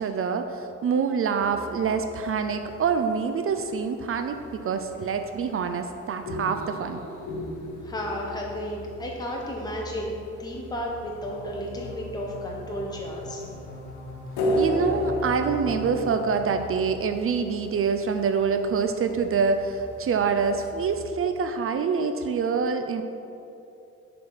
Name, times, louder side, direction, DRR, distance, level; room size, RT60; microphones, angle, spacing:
voice 1, 0.0-7.0 14.6-23.0, right 5 dB, 45° right, 7 dB, 0.5 m, -26 dB
sound 1, 1.4-21.1, left 1 dB, 80° left, 1.2 m, -36 dB
voice 2, 7.8-13.4, equal, 15° left, -2 dB, 1.1 m, -33 dB
sound 2, 11.2-16.7, left 2 dB, 65° left, 1.5 m, -42 dB
6.4 x 4.4 x 6.6 m, 2.8 s
cardioid pair, 90°, 30 cm